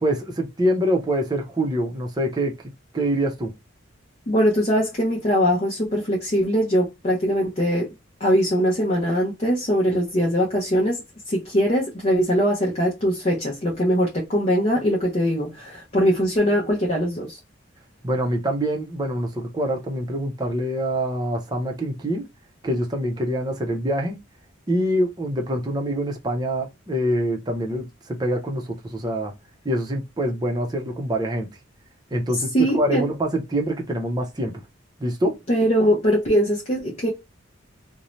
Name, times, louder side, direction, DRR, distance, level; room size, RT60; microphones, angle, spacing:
voice 1, 0.0-2.5 2.9-3.5 18.0-22.3 22.6-24.2 24.7-29.3 29.6-31.5 32.1-34.5 35.0-35.4, equal, 20° right, 0.6 m, -25 dB
voice 2, 4.3-7.9 8.2-17.4 32.5-33.1 35.5-37.1, equal, 35° left, 0.6 m, -21 dB
2.6 x 2.1 x 3.0 m
head